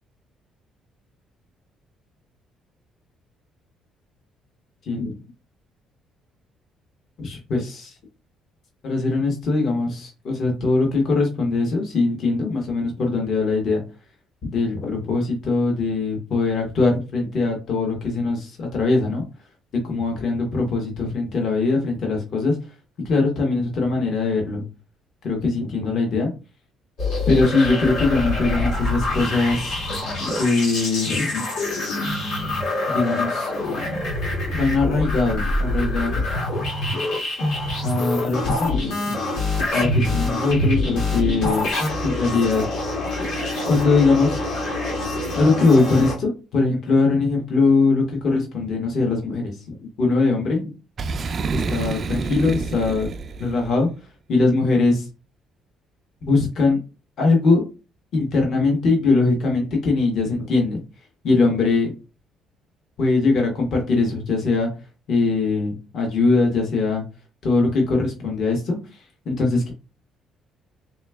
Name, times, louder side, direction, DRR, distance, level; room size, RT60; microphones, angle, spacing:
voice 1, 4.9-5.2 7.2-7.7 8.8-13.8 14.4-19.3 19.8-22.5 23.0-24.6 25.2-26.3 27.3-29.8 30.3-31.5 32.9-33.5 34.5-36.2 37.8-39.1 39.7-41.7 42.0-42.6 43.6-44.4 45.3-50.7 51.5-53.1 53.4-53.9 54.3-55.1 56.2-56.8 57.2-57.6 58.1-60.8 61.2-61.9 63.0-64.7 65.1-67.0 67.4-68.8 69.2-69.7, left 3 dB, 50° left, 1 dB, 1.3 m, -21 dB
sound 1, 27.0-46.1, left 2 dB, 75° left, 1.7 m, -25 dB
Boom, 51.0-53.7, right 4 dB, 35° right, 0.4 m, -28 dB
3.4 x 3.0 x 3.4 m, 0.31 s
cardioid pair, 130°, 0 cm